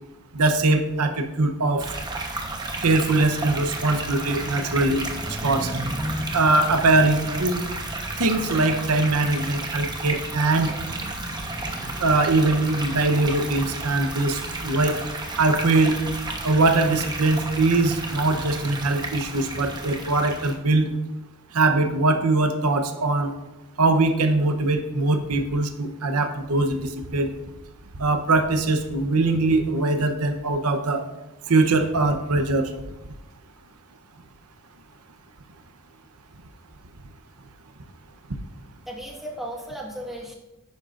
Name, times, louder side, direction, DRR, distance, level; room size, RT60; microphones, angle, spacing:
voice 1, 0.3-1.8 2.8-5.0 5.4-5.7 6.3-7.7 8.2-10.7 12.0-15.0 15.4-16.0 16.4-20.9 21.5-23.3 23.8-26.8 27.1-27.3 28.0-31.0 31.5-32.7, right 2 dB, 90° right, 7 dB, 0.9 m, -21 dB
sound 1, 1.8-20.6, right 2 dB, 20° right, 1.0 m, -32 dB
sound 2, 4.1-20.1, equal, 20° left, 1.3 m, -42 dB
voice 2, 38.8-40.3, right 1 dB, ahead, -2 dB, 1.5 m, -36 dB
10.5 x 9.1 x 2.5 m, 0.97 s
head